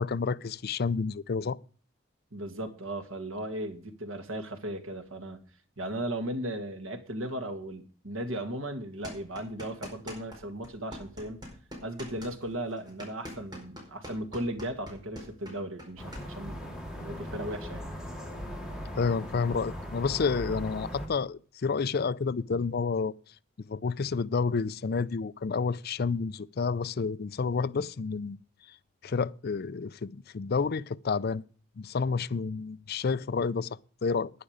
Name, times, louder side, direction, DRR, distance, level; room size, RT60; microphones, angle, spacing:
voice 1, 0.0-1.6 19.0-23.1 23.7-28.4 29.0-31.4 31.8-34.3, left 5 dB, 50° left, 0.4 m, -30 dB
voice 2, 2.3-5.4 5.8-11.4 11.8-17.8, right 1 dB, 85° right, 2.0 m, -36 dB
sound 1, 9.0-10.4 10.6-16.2, equal, 20° right, 4.7 m, -43 dB
sound 2, 16.0-21.1, equal, 5° right, 2.7 m, -39 dB
11.0 x 10.5 x 5.0 m
head